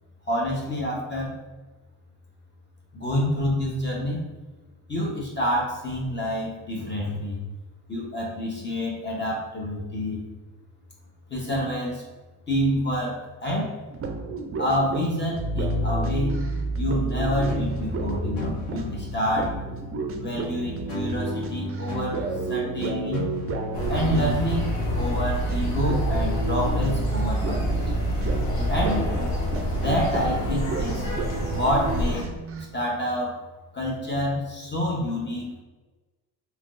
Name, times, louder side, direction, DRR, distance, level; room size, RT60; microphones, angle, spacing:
voice 1, 0.3-1.3 2.9-4.2 4.9-7.4 7.9-10.2 11.3-12.0 12.5-13.7 14.6-16.4 16.8-19.6 20.2-22.2 22.5-23.2 23.9-28.1 28.7-29.0 29.7-31.1 31.5-32.3 32.7-33.4 33.7-35.6, equal, 25° left, -2 dB, 0.9 m, -27 dB
sound 1, 13.9-25.2 25.5-25.6 25.9-32.7, right 4 dB, 30° right, 0.4 m, -34 dB
sound 2, 15.4-31.2, right 1 dB, 45° left, 1.4 m, -30 dB
sound 3, 23.7-32.2, equal, 65° left, 1.2 m, -29 dB
3.4 x 2.9 x 2.5 m, 1.2 s
supercardioid pair, 80°, 46 cm